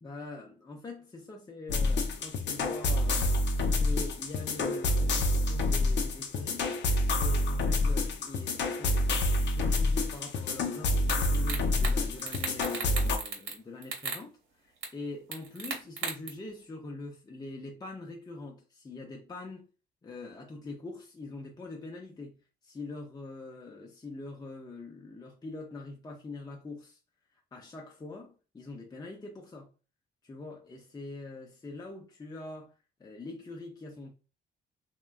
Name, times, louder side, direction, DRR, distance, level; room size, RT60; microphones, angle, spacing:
voice 1, 0.0-3.4 3.8-6.7 7.0-19.7 20.0-22.4 22.6-27.0 27.5-29.7 30.2-32.7 33.0-34.1, left 2 dB, 20° left, 0.5 m, -43 dB
sound 1, 1.7-13.2, left 2 dB, 60° left, 0.6 m, -28 dB
sound 2, 11.1-11.2 11.5-11.9 12.2-13.6 13.8-14.2 14.8-14.9 15.3-16.3, right 5 dB, 75° right, 1.0 m, -35 dB
3.2 x 2.2 x 2.3 m
cardioid pair, 90°, 20 cm